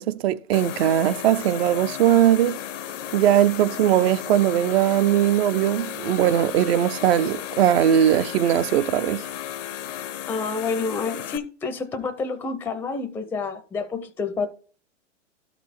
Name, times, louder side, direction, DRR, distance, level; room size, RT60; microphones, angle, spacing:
voice 1, 0.0-2.6 3.1-9.2, right 11 dB, 55° right, 0.6 m, -20 dB
sound 1, 0.5-11.4, left 11 dB, 80° left, 0.8 m, -34 dB
voice 2, 10.3-14.5, left 4 dB, 5° left, 0.5 m, -28 dB
12.0 x 4.2 x 4.3 m
hypercardioid pair, 130°, 36 cm